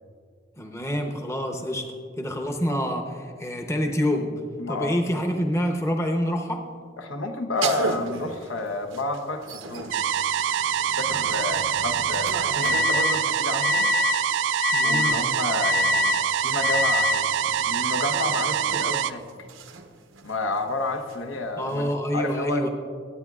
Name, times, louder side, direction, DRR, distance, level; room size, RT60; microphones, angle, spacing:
voice 1, 0.6-1.9 2.2-4.3 4.7-6.6 14.7-15.2 21.6-22.7, equal, 15° left, 3 dB, 0.7 m, -27 dB
voice 2, 4.6-5.0 7.0-10.0 10.8-13.9 14.8-17.3 17.6-19.5 20.2-22.7, left 2 dB, 85° left, 4 dB, 0.9 m, -30 dB
sound 1, 7.6-14.1 15.1-22.0, right 4 dB, 85° right, 0.8 m, -38 dB
sound 2, 9.9-19.1, right 9 dB, 70° right, 0.3 m, -25 dB
sound 3, 11.1-13.2 13.6-14.2 14.6-15.2 15.6-16.2 16.6-17.2, left 5 dB, 50° left, 0.7 m, -25 dB
22.5 x 9.1 x 2.4 m, 2.2 s
head